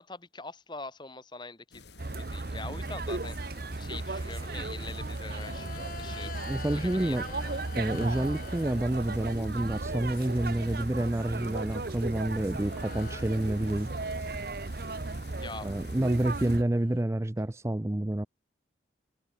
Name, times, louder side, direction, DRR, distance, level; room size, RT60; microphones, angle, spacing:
voice 1, 0.0-6.4 6.7-7.5 15.4-15.7, left 3 dB, 25° left, 1.6 m, -44 dB
sound 1, 1.7-16.6, left 5 dB, 70° left, 4.1 m, -54 dB
sound 2, 2.0-16.6, right 2 dB, 55° right, 1.0 m, -36 dB
sound 3, 3.2-9.5 9.9-11.2 11.8-14.5 15.8-15.9 16.1-17.0, left 4 dB, 50° left, 1.9 m, -48 dB
voice 2, 6.5-7.3 7.8-13.9 15.6-18.3, right 1 dB, 15° right, 0.4 m, -29 dB
head